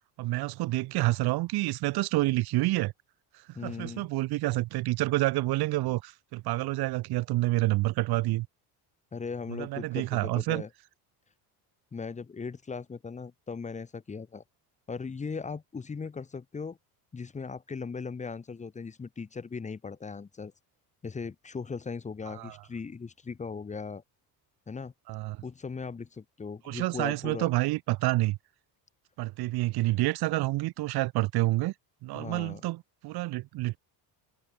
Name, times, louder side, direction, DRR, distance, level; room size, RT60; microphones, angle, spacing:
voice 1, 0.2-2.9 3.5-8.5 9.5-10.6 22.3-22.6 25.1-25.4 26.7-28.4 29.2-31.7 32.0-33.8, right 19 dB, 65° right, 5.2 m, -28 dB
voice 2, 3.5-4.1 9.1-10.7 11.9-14.4 14.9-16.8 17.1-20.5 21.0-24.0 24.7-24.9 25.4-27.5 32.1-32.6, left 5 dB, 15° left, 4.3 m, -38 dB
cardioid pair, 175°, 41 cm